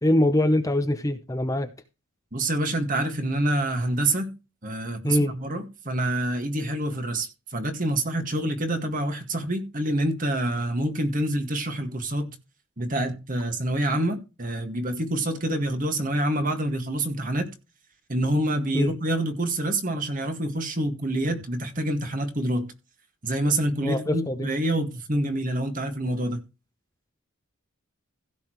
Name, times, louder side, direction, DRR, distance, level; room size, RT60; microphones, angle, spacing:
voice 1, 0.0-1.7 5.0-5.3 18.7-18.9 23.8-24.5, left 1 dB, 15° left, 0.8 m, -23 dB
voice 2, 2.3-4.3 4.6-12.4 12.8-17.5 18.1-22.7 23.2-26.4, right 1 dB, 40° right, 2.0 m, -27 dB
16.0 x 6.9 x 3.2 m
head